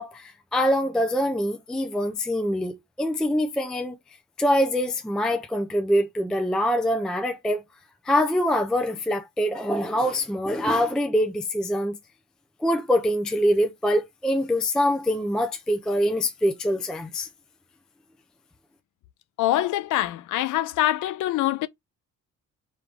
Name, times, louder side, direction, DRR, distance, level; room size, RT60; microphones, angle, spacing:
voice 1, 0.0-4.0 4.4-7.6 8.0-12.0 12.6-17.3, equal, ahead, 0.3 m, -24 dB
voice 2, 19.4-21.7, left 14 dB, 80° left, 0.5 m, -24 dB
3.5 x 2.6 x 4.5 m
cardioid pair, 170°, 31 cm